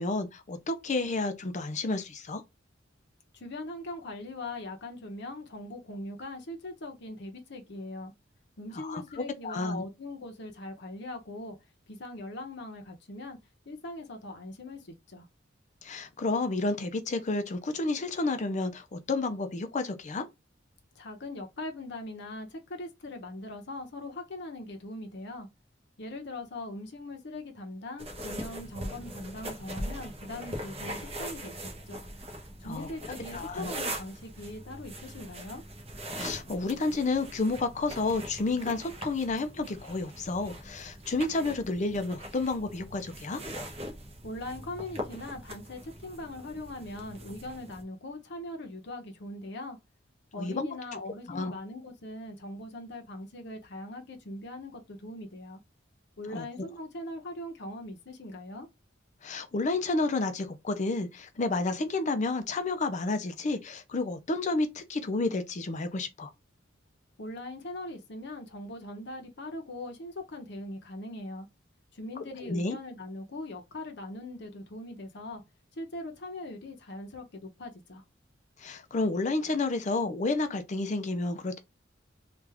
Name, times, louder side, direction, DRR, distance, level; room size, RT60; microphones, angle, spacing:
voice 1, 0.0-2.4 8.7-9.8 15.8-20.3 32.6-32.9 33.3-33.7 36.2-43.4 50.3-50.7 51.3-51.5 56.3-56.7 59.2-66.3 72.4-72.8 78.6-81.6, left 3 dB, 40° left, 0.5 m, -30 dB
voice 2, 3.3-8.1 8.6-11.6 11.9-13.4 13.7-15.3 20.9-25.5 26.0-32.0 32.6-35.6 44.2-49.8 50.3-55.6 56.2-58.7 67.2-71.5 71.9-75.4 75.7-78.0, left 2 dB, 65° left, 0.8 m, -41 dB
sound 1, 28.0-47.8, right 1 dB, 30° right, 0.8 m, -41 dB
3.4 x 2.4 x 3.3 m
head